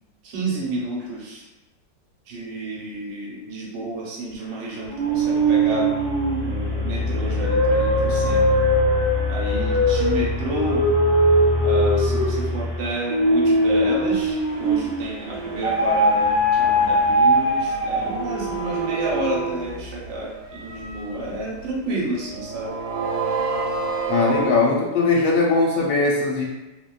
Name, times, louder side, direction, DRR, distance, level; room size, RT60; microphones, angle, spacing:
voice 1, 0.2-1.5 2.3-5.9 6.4-8.6 9.3-10.9 11.6-20.3 20.6-22.7, right 1 dB, 70° right, -3 dB, 1.2 m, -30 dB
sound 1, 4.9-15.1 15.6-18.4, equal, 35° right, 0.6 m, -20 dB
sound 2, 14.2-21.6 22.2-24.6, right 4 dB, 90° right, 1.4 m, -30 dB
voice 2, 24.1-26.4, left 3 dB, 85° left, -3 dB, 1.3 m, -20 dB
3.0 x 2.1 x 2.2 m, 1.0 s
omnidirectional pair, 2.0 m